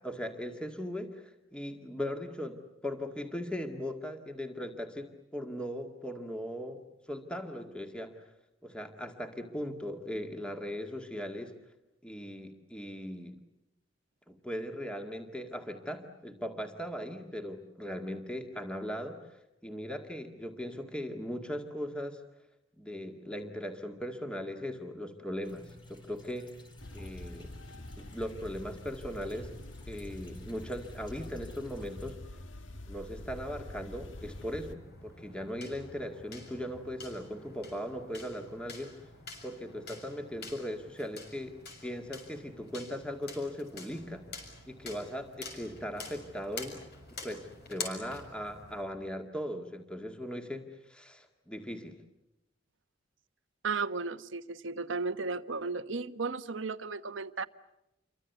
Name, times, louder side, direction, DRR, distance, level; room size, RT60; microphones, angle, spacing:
voice 1, 0.0-6.8 7.1-8.2 8.6-11.5 12.0-13.4 14.3-22.2 22.8-26.5 26.9-27.5 28.0-29.5 29.9-32.2 32.9-38.9 39.4-41.5 41.8-44.2 44.7-46.8 47.2-52.0, equal, 5° left, 4 dB, 2.1 m, -39 dB
sound 1, 25.4-32.2, left 1 dB, 25° left, 4.7 m, -53 dB
sound 2, 26.8-34.7, left 1 dB, 85° left, 1.6 m, -46 dB
sound 3, 34.1-48.9, left 3 dB, 60° left, 6.7 m, -47 dB
voice 2, 53.6-57.5, right 4 dB, 90° right, 11 dB, 1.2 m, -34 dB
28.5 x 24.5 x 8.2 m, 0.87 s
head